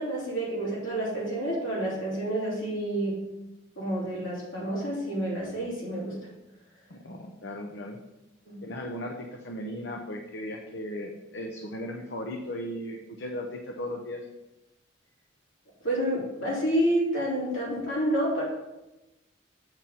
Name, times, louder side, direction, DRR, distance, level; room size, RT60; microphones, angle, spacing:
voice 1, 0.0-3.2 3.8-6.2 8.4-8.6 15.8-18.4, right 1 dB, 85° left, -5 dB, 3.0 m, -29 dB
voice 2, 6.9-8.0 8.6-14.2, left 1 dB, 60° left, 2 dB, 0.7 m, -37 dB
7.8 x 4.4 x 5.5 m, 0.98 s
head